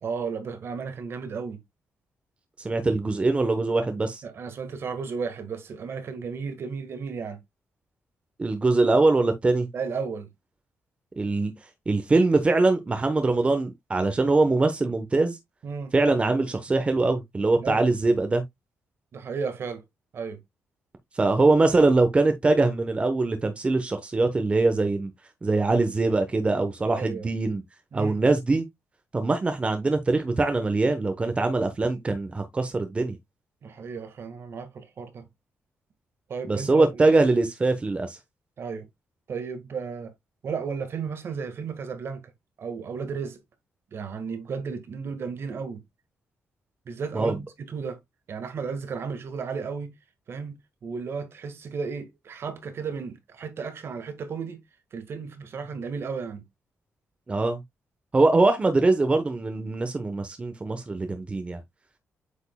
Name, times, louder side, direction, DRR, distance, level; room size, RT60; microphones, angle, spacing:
voice 1, 0.0-1.6 4.2-7.4 9.7-10.3 15.6-15.9 17.6-17.8 19.1-19.8 20.1-20.4 26.9-27.3 27.9-28.2 33.6-35.3 36.3-37.0 38.6-38.9 39.3-40.1 40.4-42.2 42.6-43.4 43.9-45.8 46.8-48.0 48.3-49.9 50.3-54.6 54.9-56.4, right 5 dB, 55° right, 1.6 m, -34 dB
voice 2, 2.6-4.2 8.4-9.7 11.2-11.5 11.9-15.4 15.9-18.4 21.2-25.1 25.4-27.6 27.9-28.7 29.1-33.2 36.4-38.2 47.1-47.4 57.3-57.6 58.1-61.6, right 3 dB, 25° right, 1.0 m, -22 dB
8.3 x 5.2 x 2.2 m
cardioid pair, 105°, 5 cm